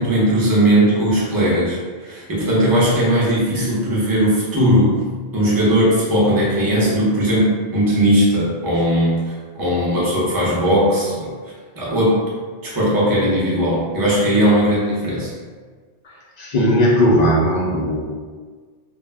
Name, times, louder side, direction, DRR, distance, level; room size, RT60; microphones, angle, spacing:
voice 1, 0.0-5.0 5.3-11.3 11.7-12.2 12.6-15.3, equal, 25° right, -7 dB, 0.6 m, -18 dB
voice 2, 16.4-18.0, equal, 55° left, -4 dB, 0.5 m, -17 dB
2.3 x 2.1 x 3.3 m, 1.5 s
omnidirectional pair, 1.2 m